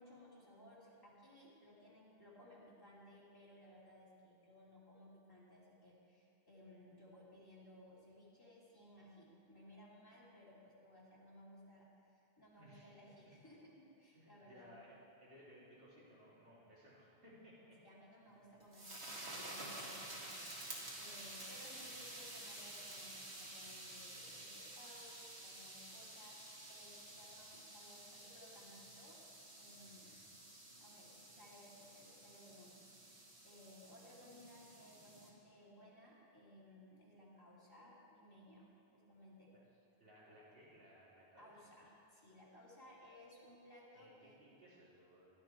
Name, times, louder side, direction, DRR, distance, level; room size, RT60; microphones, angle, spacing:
voice 1, 0.0-14.7 17.8-29.2 29.5-30.2 30.8-39.5 41.4-44.4, left 1 dB, 20° left, -7 dB, 3.0 m, -60 dB
voice 2, 12.6-12.9 14.1-17.8 27.1-27.2 29.8-30.4 39.5-39.6 40.0-41.8 43.9-45.3, equal, 60° right, -8 dB, 3.6 m, -61 dB
sound 1, 18.3-35.3, right 1 dB, 90° right, 2.3 m, -51 dB
16.5 x 11.5 x 4.6 m, 2.8 s
omnidirectional pair, 1.1 m